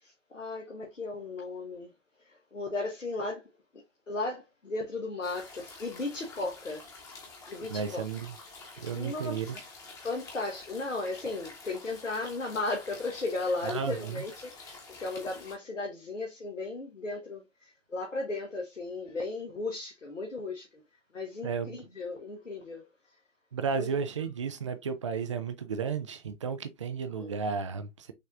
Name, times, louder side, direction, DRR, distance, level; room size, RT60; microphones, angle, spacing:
voice 1, 0.0-1.9 2.2-3.4 4.1-6.9 7.5-8.0 8.9-9.6 10.0-20.8 21.1-22.9 23.7-23.9 27.2-27.3, left 3 dB, 80° left, 1.2 m, -36 dB
sound 1, 5.2-15.5, left 3 dB, 10° left, 1.0 m, -48 dB
voice 2, 7.7-8.3 8.8-9.6 13.6-14.2 21.4-21.8 23.5-28.1, right 6 dB, 25° right, 0.4 m, -33 dB
6.4 x 3.2 x 2.4 m
figure-of-eight pair, 125°, 37 cm